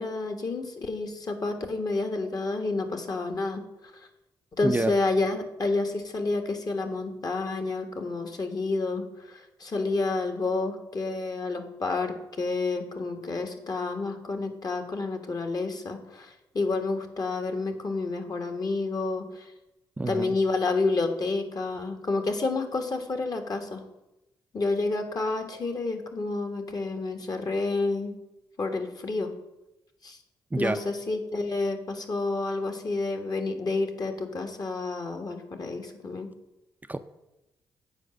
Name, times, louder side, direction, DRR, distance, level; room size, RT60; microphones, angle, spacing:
voice 1, 0.0-3.6 4.6-19.4 20.1-23.8 24.5-28.2 28.6-29.3 30.0-30.2 30.6-36.3, left 3 dB, 45° left, 6 dB, 1.5 m, -29 dB
voice 2, 20.0-20.3 30.5-30.8 36.9-37.0, right 2 dB, 20° right, 9 dB, 0.5 m, -27 dB
8.2 x 4.9 x 6.4 m, 0.94 s
supercardioid pair, 55°, 9 cm